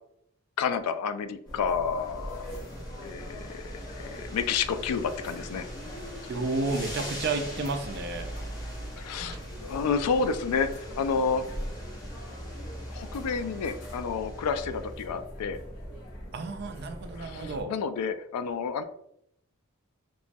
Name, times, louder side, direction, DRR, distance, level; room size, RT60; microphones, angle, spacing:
voice 1, 0.6-2.5 3.0-5.7 9.0-11.5 12.9-15.6 17.2-18.8, left 5 dB, 90° left, 11 dB, 0.3 m, -30 dB
sound 1, 1.4-17.6, equal, 65° left, 1.2 m, -41 dB
sound 2, 1.7-14.9, left 1 dB, 15° left, 0.7 m, -46 dB
voice 2, 6.3-8.3 16.3-17.7, right 3 dB, 45° right, 7 dB, 0.3 m, -31 dB
3.0 x 2.2 x 2.6 m, 0.73 s
head